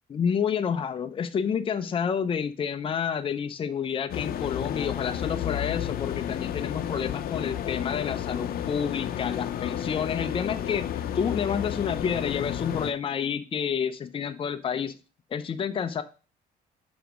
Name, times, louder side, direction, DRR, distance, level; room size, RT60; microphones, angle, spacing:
voice 1, 0.1-10.9 11.1-14.9 15.3-16.0, left 7 dB, 30° left, 9 dB, 0.7 m, -29 dB
sound 1, 4.1-12.9, left 10 dB, 60° left, 0.8 m, -31 dB
6.2 x 5.0 x 5.0 m, 0.34 s
cardioid pair, 110°, 17 cm